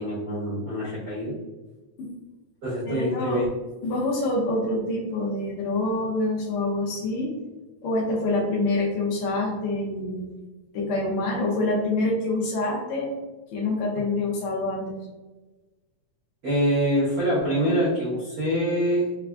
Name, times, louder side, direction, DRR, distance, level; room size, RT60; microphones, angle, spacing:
voice 1, 0.0-1.3 2.6-3.5 16.4-19.1, equal, 85° right, -9 dB, 0.8 m, -25 dB
voice 2, 2.9-3.4 3.8-7.4 7.8-10.2 10.7-13.1 13.5-14.9, left 2 dB, 75° left, -2 dB, 1.8 m, -26 dB
4.9 x 2.3 x 2.3 m, 1.2 s
omnidirectional pair, 3.4 m